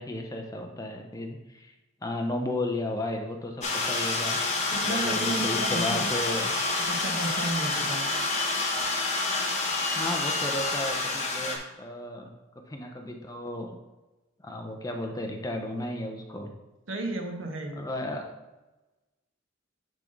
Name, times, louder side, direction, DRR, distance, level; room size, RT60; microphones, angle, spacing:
voice 1, 0.0-1.7 2.0-4.4 4.8-6.6 10.0-12.3 12.7-13.7 14.4-16.5 17.7-18.2, left 1 dB, 20° left, 3 dB, 0.7 m, -34 dB
sound 1, 3.6-11.6, left 3 dB, 35° left, 1.1 m, -28 dB
voice 2, 4.7-6.0 6.9-8.1 16.9-17.8, right 2 dB, 85° right, 3 dB, 1.1 m, -33 dB
8.9 x 3.7 x 3.9 m, 1.1 s
head